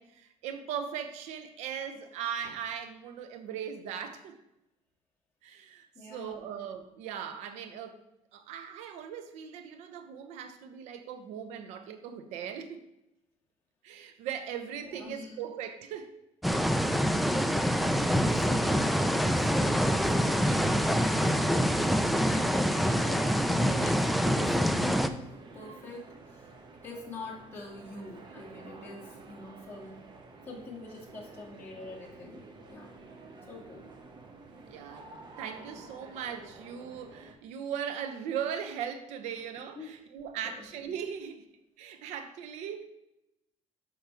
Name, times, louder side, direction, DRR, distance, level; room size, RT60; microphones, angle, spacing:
voice 1, 0.0-4.4 5.4-8.0 8.3-12.9 13.8-16.1 34.7-41.5 41.8-42.8, right 8 dB, 90° right, 8 dB, 0.7 m, -39 dB
voice 2, 5.9-6.4 14.7-15.4 18.0-25.2 25.5-26.5 26.8-30.0 30.4-32.4 32.7-32.9 33.4-33.8 39.8-39.9 40.4-40.6, left 2 dB, 20° left, -5 dB, 2.1 m, -45 dB
sound 1, 16.4-25.1, equal, ahead, 0.3 m, -26 dB
sound 2, 17.8-37.3, right 3 dB, 40° right, 1.0 m, -50 dB
6.3 x 5.9 x 3.4 m, 0.89 s
cardioid pair, 135°, 11 cm